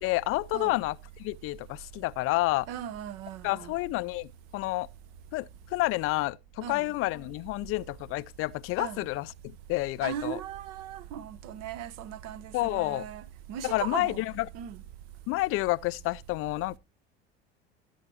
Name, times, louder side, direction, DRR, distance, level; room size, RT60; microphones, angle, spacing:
voice 1, 0.0-2.7 3.4-4.9 5.3-5.5 5.7-9.3 9.7-10.4 12.5-13.1 13.6-14.5 15.3-16.8, left 20 dB, 45° left, 0.4 m, -29 dB
voice 2, 2.7-3.7 6.6-6.9 8.8-9.1 10.0-14.3 14.5-14.8, right 10 dB, 60° right, 0.9 m, -38 dB
13.5 x 8.0 x 2.8 m
hypercardioid pair, 75°, 30 cm